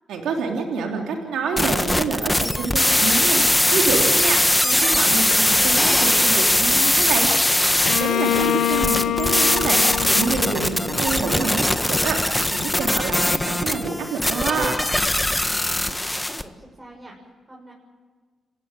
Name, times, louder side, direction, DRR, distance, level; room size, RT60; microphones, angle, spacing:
voice 1, 0.1-7.6 8.0-9.8 10.1-14.8, right 4 dB, 90° right, 1 dB, 3.3 m, -27 dB
sound 1, 1.6-16.4, left 1 dB, 10° left, 1.6 m, -20 dB
Bowed string instrument, 7.9-11.6, left 11 dB, 85° left, 1.0 m, -25 dB
voice 2, 15.5-17.7, right 1 dB, 20° right, -2 dB, 7.0 m, -45 dB
29.5 x 17.0 x 9.1 m, 1.5 s
cardioid pair, 75°, 0 cm